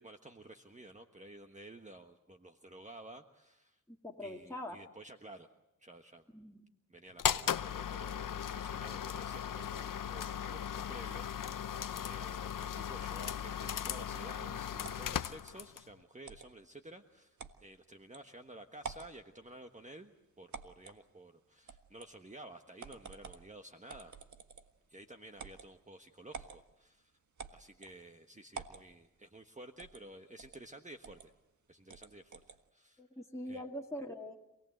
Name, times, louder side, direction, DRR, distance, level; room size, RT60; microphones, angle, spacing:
voice 1, 0.0-3.8 4.2-5.5 5.8-6.3 6.9-11.7 12.0-24.1 24.9-27.2 27.5-31.3 31.7-33.0 33.4-33.7, right 1 dB, 20° right, 5 dB, 1.4 m, -53 dB
voice 2, 4.0-4.8 6.3-6.6 33.0-34.4, left 1 dB, 10° left, -1 dB, 2.3 m, -43 dB
sound 1, 7.2-15.9, left 9 dB, 75° left, 0.8 m, -37 dB
sound 2, 14.8-15.2 16.2-16.5 17.4-17.6 18.1-18.2 18.8-19.1 20.5-21.0 21.7-22.1 22.8-23.5 23.9-24.8 25.4-25.7 26.3-26.6 27.4-28.0 28.5-28.8 29.8-30.0 30.4-30.6 31.0-31.3 31.9-32.6, right 5 dB, 65° right, 1.6 m, -48 dB
27.0 x 18.5 x 7.9 m, 0.90 s
cardioid pair, 55°, 32 cm